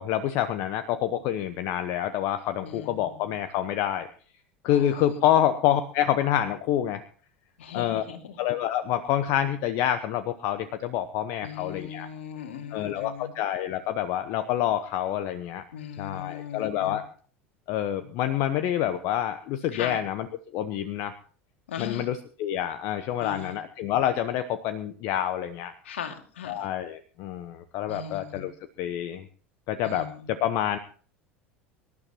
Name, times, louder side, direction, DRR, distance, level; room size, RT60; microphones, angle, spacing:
voice 1, 0.0-4.1 4.6-7.0 7.7-8.0 8.4-12.1 12.7-15.6 16.0-17.0 17.7-20.3 20.5-21.1 21.8-25.7 26.5-28.5 28.8-29.2 29.7-30.8, left 11 dB, 50° left, 10 dB, 1.0 m, -27 dB
voice 2, 2.6-3.3 4.7-5.4 7.6-8.4 11.4-13.4 15.7-17.0 19.7-20.0 21.7-22.1 23.2-23.6 25.8-26.7 27.9-28.5 29.8-30.3, left 8 dB, 70° left, 5 dB, 2.4 m, -39 dB
25.0 x 12.0 x 3.0 m, 0.42 s
figure-of-eight pair, 75°, 7 cm